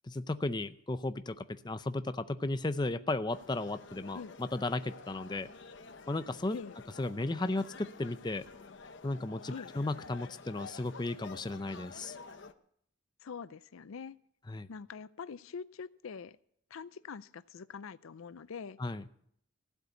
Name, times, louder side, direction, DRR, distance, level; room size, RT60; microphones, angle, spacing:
voice 1, 0.0-5.5 6.1-6.6 7.0-8.4 9.0-12.2 14.5-14.7 18.8-19.0, left 2 dB, 20° left, 11 dB, 0.5 m, -35 dB
sound 1, 3.3-12.5, left 4 dB, 60° left, 0.8 m, -50 dB
voice 2, 13.2-14.2 14.7-16.4 16.7-18.8, left 5 dB, 80° left, 17 dB, 0.5 m, -44 dB
15.5 x 8.2 x 8.1 m, 0.67 s
head